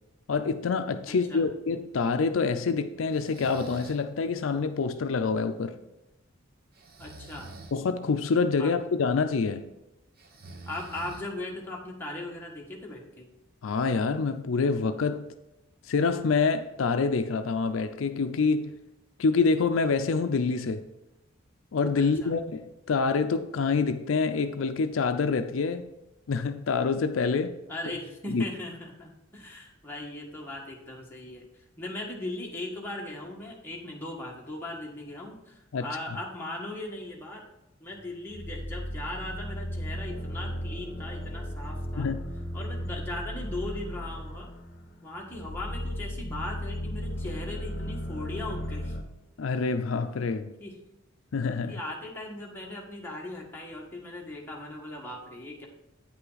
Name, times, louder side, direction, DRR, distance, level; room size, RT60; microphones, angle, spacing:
voice 1, 0.3-5.8 7.7-9.6 13.6-15.3 15.9-18.8 19.2-20.8 21.7-25.8 26.3-27.6 28.3-28.4 35.7-35.9 42.0-42.2 49.4-50.5 51.3-51.8, left 4 dB, 75° left, 0.5 m, -26 dB
voice 2, 1.0-1.5 7.0-7.5 8.6-8.7 10.7-13.3 22.0-22.3 27.7-37.4 37.8-42.1 42.5-44.5 45.0-49.0 50.6-50.8 51.7-55.7, left 1 dB, 10° left, 1.5 m, -38 dB
Breathing, 3.1-4.1 6.7-7.8 10.2-11.6, right 2 dB, 50° right, 0.9 m, -46 dB
sound 1, 38.3-49.0, equal, 50° left, 1.1 m, -35 dB
8.8 x 5.7 x 4.0 m
head